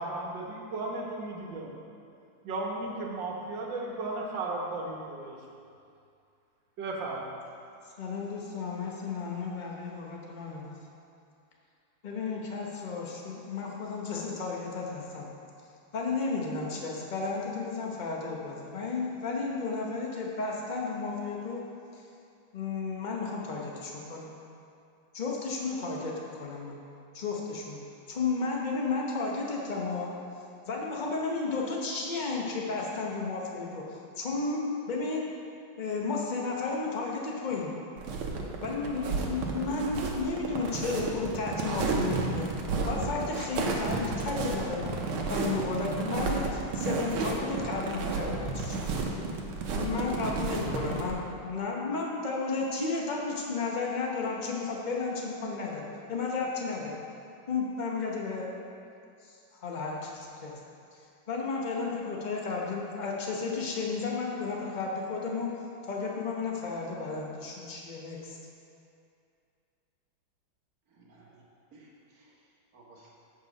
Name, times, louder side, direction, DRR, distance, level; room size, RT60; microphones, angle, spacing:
voice 1, 0.0-1.8 2.4-5.4 6.8-7.3, right 2 dB, 65° right, -1 dB, 1.7 m, -35 dB
voice 2, 8.0-10.7 12.0-15.2 15.9-21.6 21.9-22.0 22.5-24.3 25.1-26.8 27.1-27.8 28.1-30.1 30.6-35.3 35.8-37.7 38.6-42.5 42.9-45.0 45.3-49.0 49.7-57.0 57.5-58.5 59.2-59.3 59.6-60.6 61.3-65.5 65.8-68.4, left 4 dB, 65° left, -2 dB, 0.4 m, -33 dB
sound 1, 38.0-51.1, right 4 dB, 90° right, 1.7 m, -32 dB
voice 3, 70.9-71.4 71.7-73.1, right 2 dB, 50° right, -3 dB, 1.4 m, -57 dB
7.7 x 5.7 x 5.3 m, 2.5 s
omnidirectional pair, 2.2 m